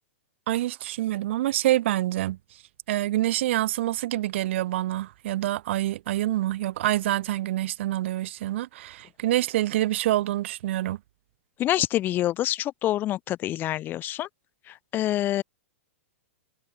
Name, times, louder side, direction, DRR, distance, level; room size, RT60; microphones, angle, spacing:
voice 1, 0.5-2.6 2.9-11.0, right 15 dB, 60° right, 0.8 m, -26 dB
voice 2, 11.6-14.3 14.7-15.4, left 13 dB, 25° left, 0.3 m, -26 dB
open air
hypercardioid pair, 115°, 7 cm